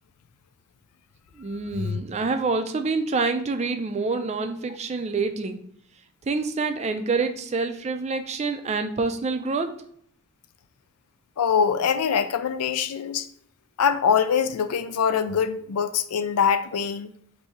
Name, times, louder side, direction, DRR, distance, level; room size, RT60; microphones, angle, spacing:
voice 1, 1.4-5.6 6.3-9.8, right 4 dB, 30° right, 0.4 m, -27 dB
voice 2, 11.4-13.3 13.8-17.1, left 7 dB, 85° left, 0.4 m, -23 dB
4.1 x 2.7 x 4.8 m
head